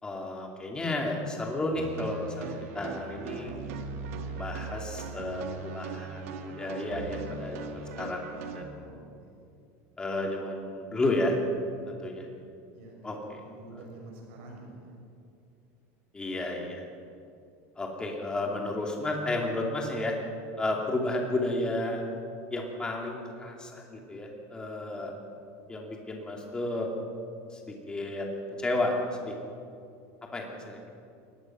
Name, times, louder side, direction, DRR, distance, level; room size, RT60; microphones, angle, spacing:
voice 1, 0.0-3.7 4.2-8.3 8.5-8.9 10.0-11.4 11.9-12.3 13.0-13.4 16.1-16.9 17.8-20.2 20.6-22.0 22.5-25.1 25.7-26.9 27.5-28.3 28.6-29.4 30.3-30.9, left 2 dB, 10° left, 0 dB, 2.7 m, -32 dB
sound 1, 1.8-8.6, right 5 dB, 90° right, 1.9 m, -39 dB
voice 2, 8.8-9.4 12.7-14.9 30.5-30.8, right 2 dB, 70° right, 0 dB, 6.2 m, -48 dB
22.5 x 19.0 x 6.1 m, 2.5 s
cardioid pair, 165°, 7 cm